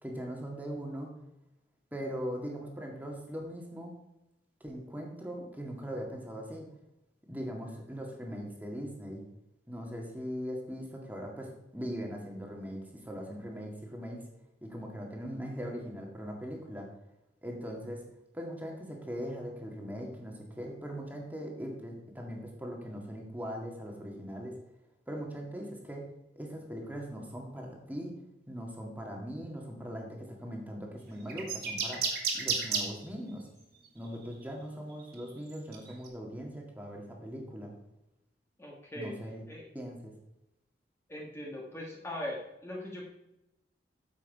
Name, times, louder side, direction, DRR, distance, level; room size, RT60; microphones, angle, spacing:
voice 1, 0.0-1.1 1.9-4.0 4.6-6.7 7.3-9.2 9.7-14.2 14.6-16.9 17.4-18.0 18.3-24.6 25.1-26.1 26.3-28.1 28.5-32.0 32.3-33.5 33.9-37.7 39.0-39.4 39.7-40.1, equal, 10° right, 0 dB, 1.8 m, -40 dB
sound 1, 31.3-32.9 34.0-34.2 34.9-36.1, right 5 dB, 60° right, 2.2 m, -31 dB
voice 2, 38.6-39.1 39.5-39.6 41.1-43.1, left 1 dB, 15° left, -2 dB, 1.6 m, -40 dB
9.4 x 7.5 x 4.7 m, 0.91 s
head